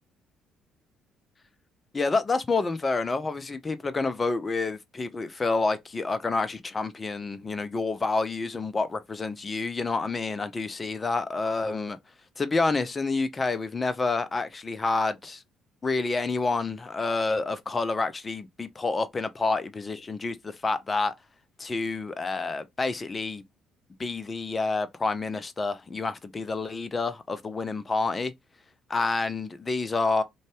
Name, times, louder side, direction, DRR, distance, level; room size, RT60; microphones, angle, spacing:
voice 1, 1.9-12.0 12.4-15.4 15.8-21.1 21.6-23.4 24.0-28.3 28.9-30.2, left 3 dB, 30° left, 0.5 m, -28 dB
2.6 x 2.3 x 3.1 m
hypercardioid pair, 50°, 0 cm